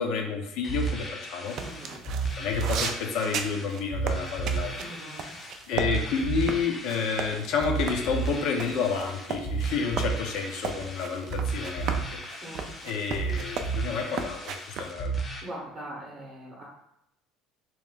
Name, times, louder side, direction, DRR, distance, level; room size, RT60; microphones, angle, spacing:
voice 1, 0.0-1.6 2.4-4.7 5.1-5.3 5.7-12.2 12.8-15.1, left 5 dB, 55° left, 3 dB, 0.7 m, -30 dB
sound 1, 0.6-15.4, right 4 dB, 15° left, 0.5 m, -33 dB
sound 2, 1.5-5.9 6.2-14.9, right 6 dB, 45° right, 0.4 m, -35 dB
voice 2, 1.6-2.0 4.8-5.3 12.4-12.7 15.4-16.6, right 1 dB, 25° right, -5 dB, 0.9 m, -41 dB
3.2 x 3.1 x 3.6 m, 0.79 s
cardioid pair, 165°, 0 cm